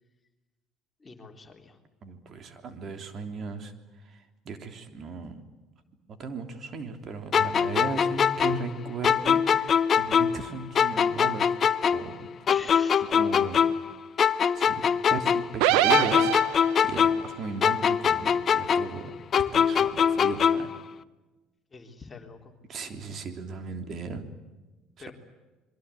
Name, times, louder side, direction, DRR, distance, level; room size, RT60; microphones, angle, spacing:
voice 1, 1.0-1.8 12.5-13.1 21.7-22.5 25.0-25.1, left 4 dB, 25° left, 3 dB, 3.7 m, -44 dB
voice 2, 2.0-3.7 4.0-5.4 6.1-11.6 11.9-12.3 13.1-13.6 14.5-14.8 15.1-16.3 16.8-20.7 22.7-24.2 25.0-25.1, right 4 dB, 45° right, 6 dB, 3.3 m, -36 dB
sound 1, 7.3-10.5 10.7-13.9 14.2-17.3 17.6-20.8, left 7 dB, 40° left, 0.9 m, -23 dB
sound 2, 15.6-17.0, right 14 dB, 75° right, 1.1 m, -23 dB
26.5 x 22.5 x 8.5 m, 1.2 s
hypercardioid pair, 75°, 0 cm